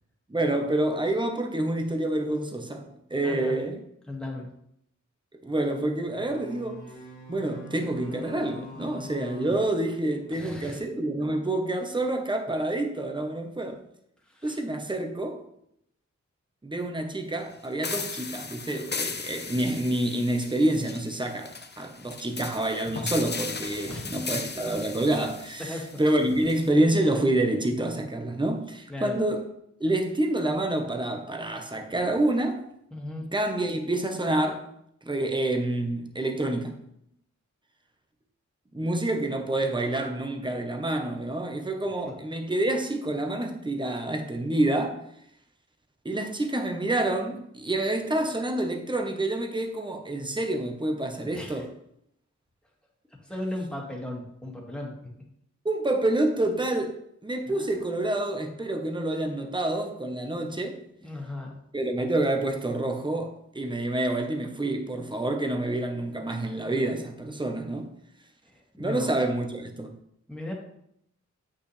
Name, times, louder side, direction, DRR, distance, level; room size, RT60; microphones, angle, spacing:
voice 1, 0.3-3.8 5.4-6.8 7.3-13.8 14.4-15.4 16.6-29.5 29.8-32.6 33.3-34.7 35.0-36.8 38.7-45.0 46.0-51.7 55.6-57.0 57.2-60.8 61.7-67.9 68.8-70.0, right 1 dB, 15° right, 1.0 m, -28 dB
voice 2, 3.2-3.6 4.1-4.5 10.3-10.8 14.3-14.6 23.9-24.2 25.6-25.8 28.9-29.2 32.9-33.3 42.1-42.2 51.2-51.7 53.2-55.1 57.5-58.2 61.0-61.5 68.4-69.1 70.3-70.5, left 1 dB, 5° left, 2.1 m, -37 dB
sound 1, 6.1-10.5, left 2 dB, 75° left, 2.3 m, -44 dB
sound 2, 17.8-26.7, left 4 dB, 35° left, 0.7 m, -37 dB
8.7 x 5.7 x 3.3 m
wide cardioid pair, 80°, 30 cm